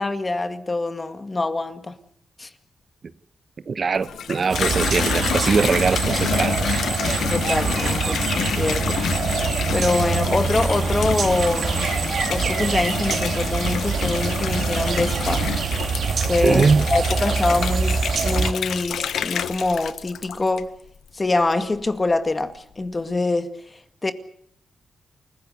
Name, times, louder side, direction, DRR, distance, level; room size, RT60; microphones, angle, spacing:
voice 1, 0.0-2.0 2.4-2.5 7.3-9.0 9.7-11.8 12.3-15.5 16.3-16.6 16.9-20.7 21.1-23.6 24.0-24.1, left 2 dB, 25° left, 2.1 m, -24 dB
voice 2, 3.7-6.6 16.4-16.8, right 5 dB, 45° right, 1.1 m, -21 dB
Water tap faucet / Bathtub (filling or washing), 3.9-20.9 21.3-21.9, left 8 dB, 90° left, 1.1 m, -28 dB
sound 1, 4.5-18.5, right 5 dB, 60° right, 2.2 m, -24 dB
28.5 x 16.0 x 8.2 m
wide cardioid pair, 110°, 0 cm